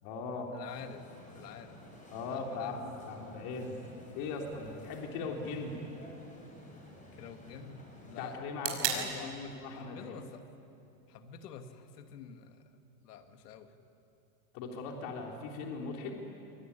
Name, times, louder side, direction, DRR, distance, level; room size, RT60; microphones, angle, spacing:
voice 1, 0.0-0.5 2.1-3.8 4.2-5.8 8.2-10.3 14.5-16.1, left 4 dB, 45° left, 1 dB, 3.8 m, -39 dB
voice 2, 0.5-1.1 1.3-1.8 2.3-2.8 7.1-8.4 8.6-10.5 11.1-13.7, left 7 dB, 75° left, 7 dB, 2.4 m, -48 dB
sound 1, 0.7-8.4, left 1 dB, 15° left, 6.5 m, -53 dB
sound 2, 4.5-12.5, right 9 dB, 45° right, 5.6 m, -43 dB
26.0 x 23.0 x 9.9 m, 2.7 s
supercardioid pair, 140°, 47 cm